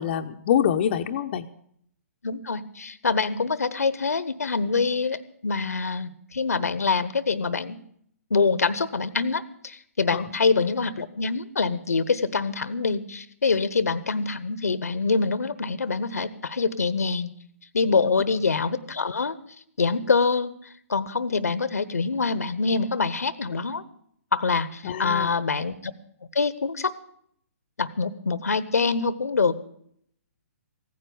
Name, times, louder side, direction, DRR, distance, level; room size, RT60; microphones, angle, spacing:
voice 1, 0.0-1.5 10.1-10.2 24.8-25.3, left 9 dB, 45° left, 5 dB, 0.8 m, -25 dB
voice 2, 2.2-7.8 8.3-17.3 17.7-19.4 19.8-20.5 20.9-23.8 24.3-25.9 26.3-26.9 27.8-29.5, left 4 dB, 80° left, 16 dB, 1.0 m, -25 dB
16.0 x 9.6 x 6.9 m, 0.66 s
figure-of-eight pair, 130°, 8 cm